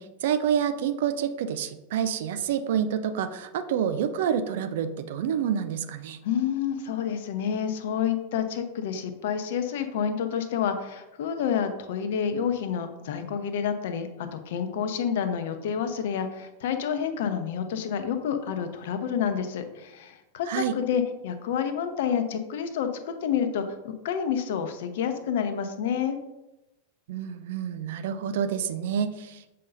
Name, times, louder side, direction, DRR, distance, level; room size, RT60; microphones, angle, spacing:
voice 1, 0.0-6.2 20.5-20.8 27.1-29.5, right 8 dB, 55° right, 10 dB, 0.5 m, -28 dB
voice 2, 6.2-26.2, left 8 dB, 55° left, 8 dB, 0.7 m, -29 dB
7.5 x 5.5 x 2.6 m, 0.96 s
figure-of-eight pair, 90°, 0 cm